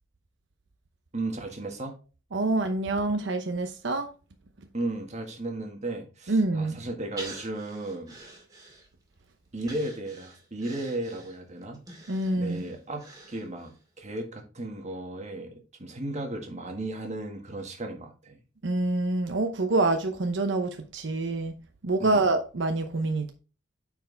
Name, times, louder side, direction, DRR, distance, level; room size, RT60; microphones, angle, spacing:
voice 1, 1.1-1.9 4.7-8.2 9.5-11.8 12.3-18.4 22.0-22.2, right 2 dB, 40° right, 1.6 m, -35 dB
voice 2, 2.3-4.1 6.3-6.8 12.1-12.7 18.6-21.5 21.8-23.3, right 2 dB, 80° right, 0.8 m, -26 dB
Breathing, 7.2-9.1 9.6-13.8 14.2-14.3, right 2 dB, 20° right, 2.1 m, -46 dB
9.1 x 4.7 x 3.3 m
head